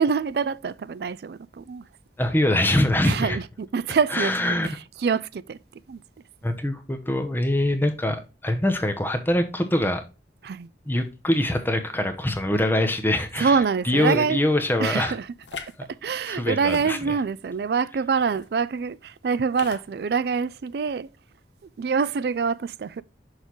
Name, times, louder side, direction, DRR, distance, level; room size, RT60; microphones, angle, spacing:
voice 1, 0.0-1.8 3.0-4.3 5.0-5.6 5.9-6.0 10.4-10.7 13.4-14.4 14.8-15.3 16.0-21.1 21.8-23.0, right 5 dB, 60° right, 0.4 m, -25 dB
voice 2, 2.2-3.4 4.1-4.7 6.4-10.0 10.9-15.2 16.2-17.0, left 1 dB, 10° left, 0.8 m, -24 dB
sound 1, 14.0-14.3 15.4-15.8 16.6-17.4 18.2-18.5 19.5-19.9, left 5 dB, 80° left, 0.9 m, -40 dB
6.4 x 5.3 x 3.0 m
head